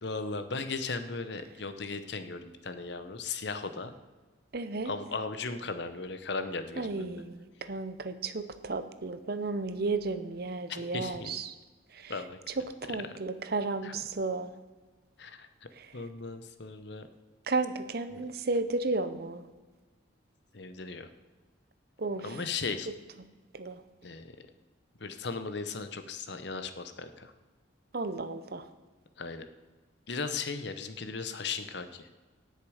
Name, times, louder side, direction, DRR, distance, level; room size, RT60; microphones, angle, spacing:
voice 1, 0.0-3.9 4.8-7.2 10.7-11.4 12.1-12.4 13.8-14.0 15.2-15.5 15.9-17.1 18.1-18.2 20.5-21.1 22.2-22.9 24.0-24.4 25.0-27.3 29.2-29.5 30.1-32.1, left 4 dB, 60° left, 10 dB, 0.9 m, -37 dB
voice 2, 4.5-4.9 6.8-11.5 12.0-12.1 12.6-14.5 17.5-19.4 22.0-22.3 23.5-23.8 27.9-28.6, right 3 dB, 50° right, 11 dB, 0.7 m, -33 dB
18.0 x 6.6 x 4.9 m, 1.3 s
head